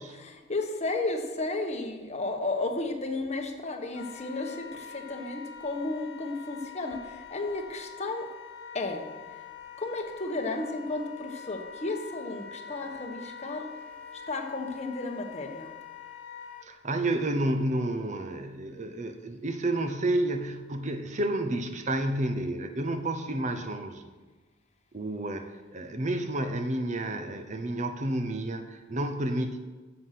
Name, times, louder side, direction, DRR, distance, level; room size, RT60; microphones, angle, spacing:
voice 1, 0.1-8.3 8.7-9.0 9.8-13.7 14.3-15.7, left 2 dB, 35° left, 4 dB, 1.2 m, -33 dB
Wind instrument woodwind instrument, 3.9-16.7, left 7 dB, 60° left, 1.3 m, -45 dB
voice 2, 16.6-24.0 24.9-29.6, right 1 dB, 40° right, 8 dB, 0.7 m, -30 dB
9.9 x 7.8 x 5.9 m, 1.3 s
head